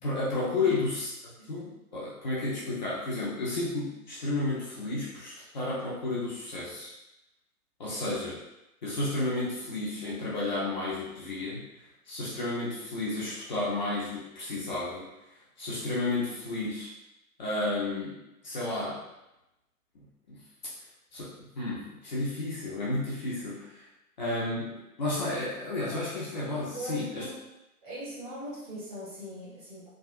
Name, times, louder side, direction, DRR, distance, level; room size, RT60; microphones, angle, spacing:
voice 1, 0.0-1.1 1.5-6.9 7.8-8.4 8.8-11.6 12.1-15.1 15.6-16.9 17.4-18.2 18.4-19.0 19.9-20.4 21.1-23.9 24.2-27.3, left 2 dB, 30° left, -7 dB, 0.5 m, -32 dB
voice 2, 26.7-27.4 27.8-29.9, right 1 dB, 15° right, -9 dB, 0.7 m, -40 dB
3.4 x 2.3 x 2.5 m, 0.93 s
figure-of-eight pair, 120°, 46 cm